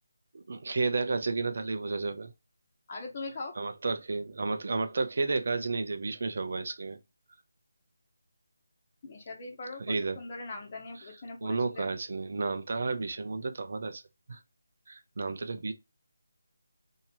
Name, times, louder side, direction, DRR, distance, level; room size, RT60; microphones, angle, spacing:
voice 1, 0.3-2.3 3.6-7.0 9.9-10.2 11.0-11.1 11.4-14.0 14.3-14.4 14.9-15.7, right 3 dB, 55° right, 0.6 m, -32 dB
voice 2, 2.9-3.5 9.0-11.9, left 3 dB, 35° left, 1.1 m, -41 dB
2.8 x 2.8 x 4.4 m
figure-of-eight pair, 160°, 0 cm